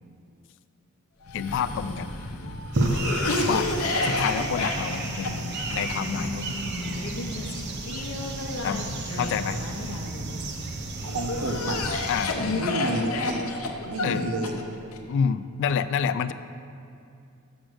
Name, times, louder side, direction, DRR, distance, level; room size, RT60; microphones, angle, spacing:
Cough, 1.2-10.5 11.0-15.0, left 2 dB, 75° left, 0.7 m, -31 dB
voice 1, 1.3-2.1 3.4-3.7 4.0-6.6 8.6-8.8 9.2-9.6 12.1-12.4 14.0-14.3 15.1-16.3, left 7 dB, 60° left, 13 dB, 0.3 m, -28 dB
sound 1, 2.7-12.3, right 2 dB, 55° right, 0.7 m, -32 dB
voice 2, 11.0-11.8 12.6-13.5 13.9-14.5, right 1 dB, 85° right, 3 dB, 0.8 m, -30 dB
6.3 x 6.2 x 6.3 m, 2.5 s
head